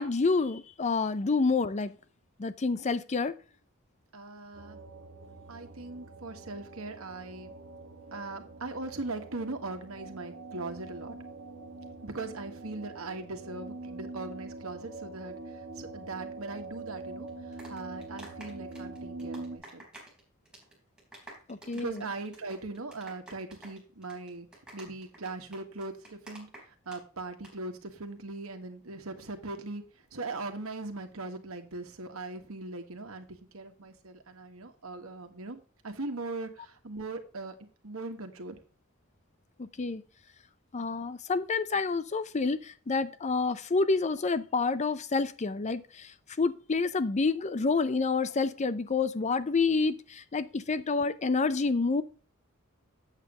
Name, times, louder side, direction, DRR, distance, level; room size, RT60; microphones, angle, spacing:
voice 1, 0.0-1.9 2.4-3.3 21.5-22.1 39.6-40.0 40.7-52.0, left 4 dB, 35° left, 0.5 m, -28 dB
voice 2, 4.1-4.8 5.5-7.5 8.1-11.2 12.0-19.9 21.7-24.5 24.7-29.8 30.1-37.5 37.8-38.6, right 3 dB, 85° right, 1.5 m, -40 dB
sound 1, 4.5-19.6, right 3 dB, 65° right, 1.4 m, -44 dB
sound 2, 17.3-20.2 20.5-20.7 21.0-27.0 27.3-27.5, right 1 dB, 5° right, 4.0 m, -49 dB
8.2 x 7.2 x 3.7 m
head